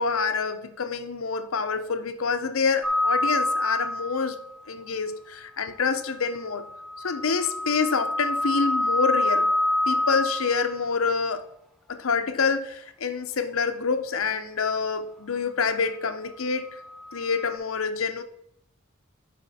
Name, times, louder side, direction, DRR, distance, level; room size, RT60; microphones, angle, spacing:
voice 1, 0.0-4.4 4.7-6.6 7.0-9.5 9.9-11.4 11.9-16.7 17.1-18.2, left 5 dB, 85° left, 0.7 m, -27 dB
sound 1, 2.8-4.5 6.5-10.8 16.8-17.5, left 1 dB, ahead, 0.9 m, -27 dB
11.5 x 5.0 x 4.2 m
head